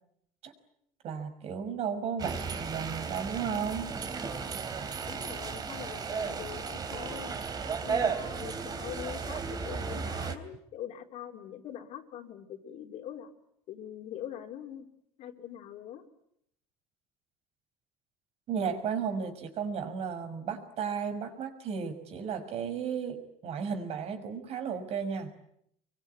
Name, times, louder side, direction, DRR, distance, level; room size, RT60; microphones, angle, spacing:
voice 1, 1.0-3.9 18.5-25.3, right 6 dB, 50° right, 8 dB, 5.8 m, -34 dB
sound 1, 2.2-10.4, right 5 dB, 30° right, 3.2 m, -34 dB
voice 2, 5.0-7.3 7.8-13.3 13.7-14.9 15.2-16.0, left 10 dB, 60° left, 4 dB, 3.9 m, -43 dB
26.5 x 23.5 x 9.5 m, 0.74 s
cardioid pair, 140°, 13 cm